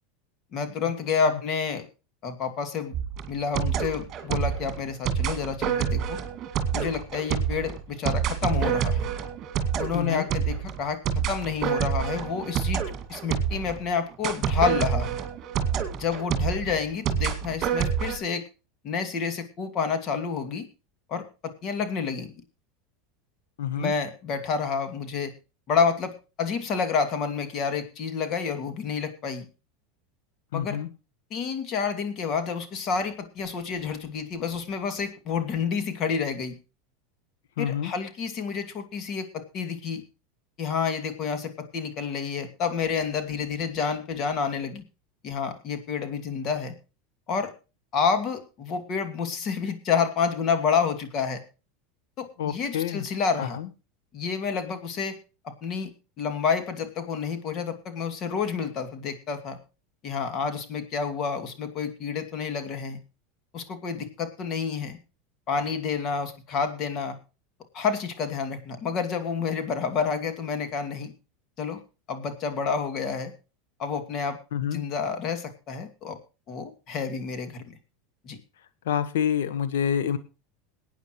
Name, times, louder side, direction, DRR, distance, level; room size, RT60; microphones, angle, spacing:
voice 1, 0.5-1.9 2.2-2.9 3.3-6.2 6.7-9.1 9.8-12.8 13.1-15.2 15.9-18.4 18.8-20.7 21.1-22.3 23.8-25.3 25.7-29.5 30.5-30.8 31.3-36.5 37.6-40.0 40.6-44.8 45.2-46.7 47.3-47.5 47.9-51.4 52.2-53.6 54.1-55.2 55.4-55.9 56.2-59.6 60.0-63.0 63.5-65.0 65.5-67.2 67.7-71.1 71.6-71.8 72.1-73.3 73.8-74.4 74.7-76.2 76.5-77.6 78.2-78.4, left 6 dB, 45° left, 7 dB, 2.6 m, -29 dB
sound 1, 2.9-13.8 14.2-18.2, right 8 dB, 40° right, 2.3 m, -27 dB
voice 2, 9.9-10.3 23.6-23.9 30.5-30.9 37.6-37.9 52.4-53.1 53.4-53.7 74.5-74.9 78.8-80.2, left 9 dB, 85° left, 12 dB, 1.3 m, -27 dB
22.0 x 9.2 x 3.1 m, 0.31 s
supercardioid pair, 115°, 0 cm